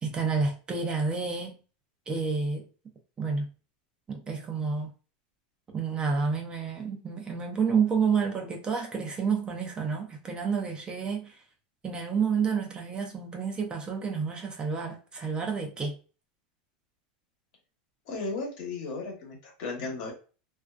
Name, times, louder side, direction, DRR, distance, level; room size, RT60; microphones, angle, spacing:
voice 1, 0.0-1.6 2.1-2.7 3.2-3.5 4.1-4.9 5.7-11.4 11.8-16.0, right 5 dB, 20° right, 0.4 m, -29 dB
voice 2, 18.1-20.1, left 3 dB, 60° left, 1.0 m, -35 dB
2.4 x 2.2 x 2.3 m
supercardioid pair, 135°, 4 cm